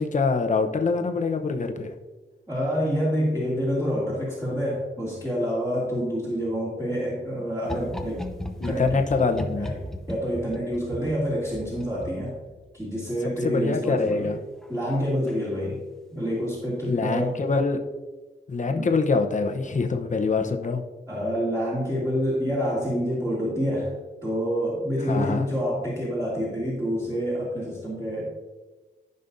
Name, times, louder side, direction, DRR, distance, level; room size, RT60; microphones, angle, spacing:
voice 1, 0.0-1.9 8.6-9.7 13.4-14.4 16.9-17.8 18.5-20.8 25.1-25.5, left 4 dB, 40° left, 5 dB, 0.9 m, -24 dB
voice 2, 2.5-8.3 8.6-9.3 9.6-9.8 10.1-12.3 12.7-14.3 14.7-15.8 16.1-17.4 18.7-18.9 21.1-23.9 24.2-28.3, equal, 15° right, -8 dB, 2.5 m, -27 dB
sound 1, 7.6-12.8 14.6-15.0 15.3-15.4, left 1 dB, ahead, 0.7 m, -36 dB
14.5 x 5.4 x 2.7 m, 1.2 s
wide cardioid pair, 90°, 19 cm